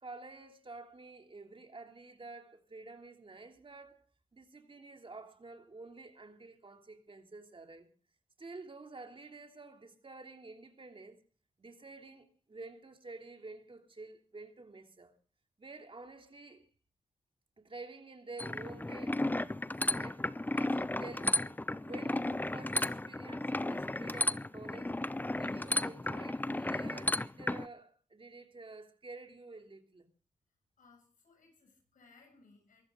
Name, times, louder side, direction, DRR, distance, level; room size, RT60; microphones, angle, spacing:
voice 1, 0.0-4.0 4.3-7.9 8.4-11.2 11.6-15.1 15.6-16.7 17.6-19.2 19.8-25.0 25.4-30.1, right 3 dB, 40° right, 3.0 m, -50 dB
sound 1, 18.4-27.7, left 1 dB, 15° left, 0.7 m, -34 dB
voice 2, 30.8-32.8, left 4 dB, 80° left, 7.5 m, -63 dB
23.5 x 13.0 x 3.8 m
cardioid pair, 50°, 14 cm